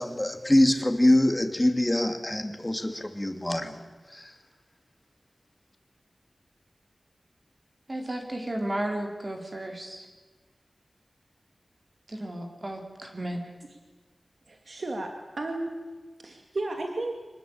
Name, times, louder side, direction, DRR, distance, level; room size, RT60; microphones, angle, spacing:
voice 1, 0.0-3.8 4.1-4.3, left 1 dB, 20° left, 6 dB, 2.8 m, -24 dB
voice 2, 7.9-10.1 12.1-13.4, right 1 dB, 40° right, 2 dB, 4.1 m, -33 dB
voice 3, 14.5-15.8 16.2-17.1, right 2 dB, 70° right, 3 dB, 2.6 m, -33 dB
25.5 x 19.5 x 8.9 m, 1.3 s
wide cardioid pair, 70°, 0 cm